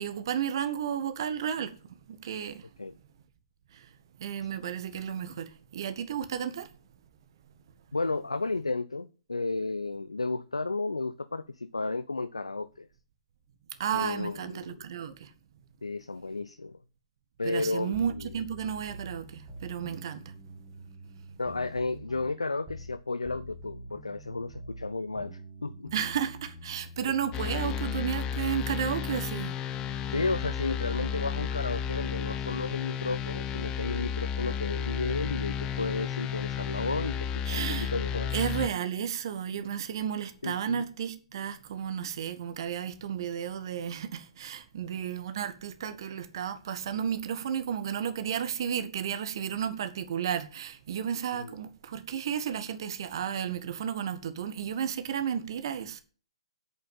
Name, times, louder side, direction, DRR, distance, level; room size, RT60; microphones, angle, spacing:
voice 1, 0.0-1.7 2.1-2.6 4.2-6.7 13.8-15.3 17.4-20.2 25.9-29.5 37.4-37.9 38.3-56.0, right 8 dB, 55° right, 1.6 m, -33 dB
voice 2, 7.9-12.9 13.9-14.8 15.8-16.8 17.4-18.3 21.4-25.9 30.1-38.3 40.4-40.8 51.3-51.5, left 3 dB, 90° left, 0.7 m, -33 dB
sound 1, 17.9-23.0 23.2-28.0, equal, 20° right, 2.9 m, -46 dB
sound 2, 27.3-38.7, left 7 dB, 25° left, 0.7 m, -33 dB
8.3 x 7.7 x 7.4 m
figure-of-eight pair, 125°, 3 cm